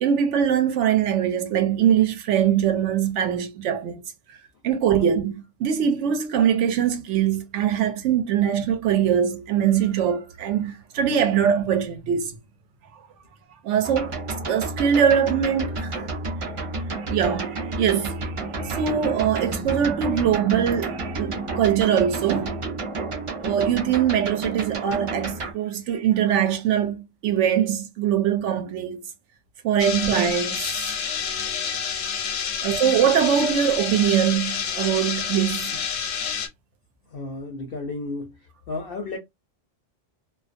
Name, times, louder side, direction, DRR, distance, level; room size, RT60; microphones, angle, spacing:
voice 1, 0.0-4.0 4.6-12.4 13.6-14.2 14.5-16.0 17.1-22.6 23.4-29.0 29.6-30.7 32.6-35.7, right 9 dB, 75° right, 0.9 m, -22 dB
sound 1, 13.8-25.5, right 3 dB, 45° right, 0.4 m, -31 dB
sound 2, 18.4-25.0, equal, 10° right, 1.0 m, -42 dB
sound 3, 29.8-36.5, left 7 dB, 90° left, 1.0 m, -28 dB
voice 2, 37.1-38.4 38.7-39.2, left 3 dB, 60° left, 0.7 m, -33 dB
2.3 x 2.2 x 2.5 m
omnidirectional pair, 1.3 m